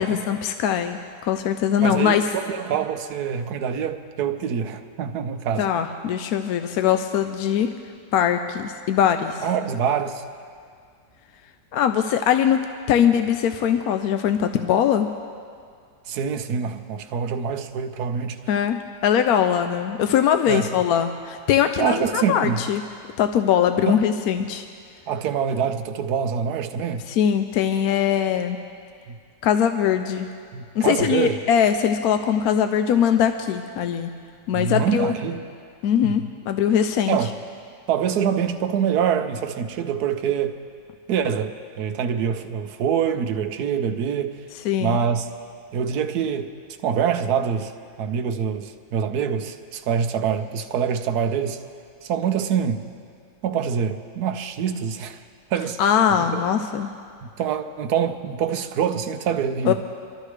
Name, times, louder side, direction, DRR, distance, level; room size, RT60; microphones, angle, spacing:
voice 1, 0.0-2.3 5.6-7.7 8.1-9.4 11.7-15.1 18.5-22.8 23.2-24.7 27.1-28.6 29.4-30.3 30.7-34.1 34.5-35.1 35.8-37.2 44.6-45.0 55.8-56.9 59.6-59.7, left 9 dB, 70° left, 8 dB, 1.0 m, -21 dB
voice 2, 1.8-5.7 9.4-10.2 16.1-18.4 20.5-20.7 21.8-22.6 23.9-24.0 25.1-27.0 29.1-29.2 30.5-31.4 34.5-35.4 36.0-36.2 37.1-37.3 37.9-40.6 41.1-44.4 44.8-45.3 45.7-46.5 46.8-47.7 48.0-51.6 52.0-52.9 53.4-55.2 55.5-55.8 56.3-56.4 57.2-59.7, right 7 dB, 75° right, 7 dB, 1.2 m, -25 dB
24.5 x 13.0 x 3.3 m, 2.2 s
omnidirectional pair, 1.8 m